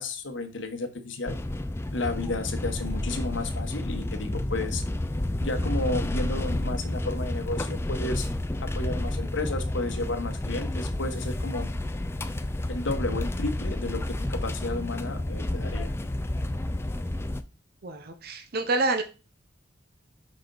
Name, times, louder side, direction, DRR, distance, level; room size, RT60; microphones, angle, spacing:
voice 1, 0.0-1.4 1.9-4.8 5.4-8.3 8.6-11.7 12.7-15.9, left 2 dB, 70° left, 6 dB, 1.2 m, -32 dB
sound 1, 1.3-17.4, left 1 dB, 15° left, 0.4 m, -30 dB
voice 2, 17.8-19.0, right 2 dB, 50° right, 6 dB, 0.7 m, -27 dB
6.0 x 5.1 x 3.9 m, 0.32 s
head